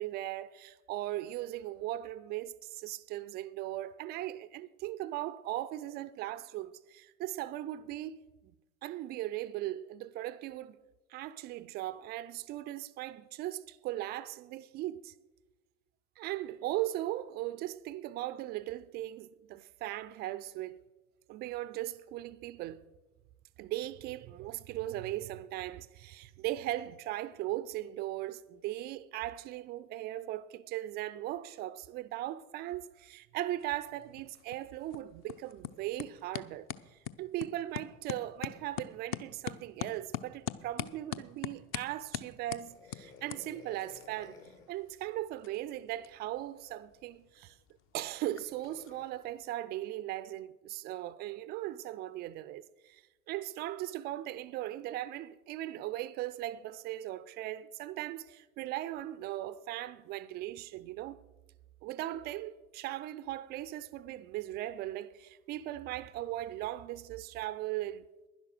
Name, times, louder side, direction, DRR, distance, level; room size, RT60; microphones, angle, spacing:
voice 1, 0.0-8.2 8.8-10.8 11.1-15.1 16.2-20.8 21.3-22.8 23.6-44.4 44.7-47.6 47.9-61.2 61.8-68.1, right 14 dB, 25° right, 0.3 m, -38 dB
sound 1, 33.6-49.5, left 10 dB, 30° left, 0.6 m, -45 dB
sound 2, 42.7-44.8 46.6-46.7 48.3-49.1, left 6 dB, 50° left, 2.1 m, -55 dB
11.0 x 10.5 x 6.5 m
figure-of-eight pair, 75°, 42 cm